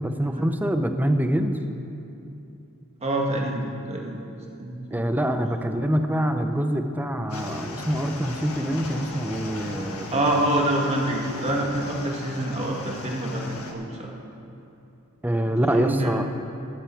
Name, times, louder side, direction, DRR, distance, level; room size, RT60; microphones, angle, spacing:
voice 1, 0.0-1.6 4.9-10.2 15.2-16.4, equal, 10° right, 7 dB, 0.7 m, -25 dB
voice 2, 3.0-4.2 4.6-5.5 10.1-14.1 15.4-16.1, right 1 dB, 30° right, -1 dB, 1.8 m, -27 dB
sound 1, 7.3-13.7, left 2 dB, 70° left, 1.5 m, -37 dB
16.0 x 12.0 x 4.6 m, 2.8 s
head